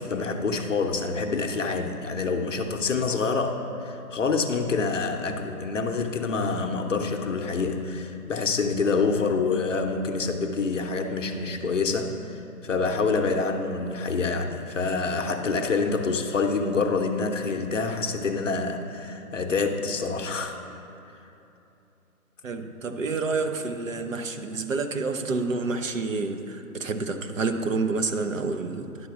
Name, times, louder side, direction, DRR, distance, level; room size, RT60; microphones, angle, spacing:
voice 1, 0.0-12.1 12.6-20.6, left 4 dB, 55° left, 4 dB, 0.7 m, -26 dB
voice 2, 22.4-28.9, right 3 dB, 55° right, 7 dB, 0.7 m, -28 dB
11.0 x 4.2 x 5.9 m, 2.9 s
figure-of-eight pair, 160°, 46 cm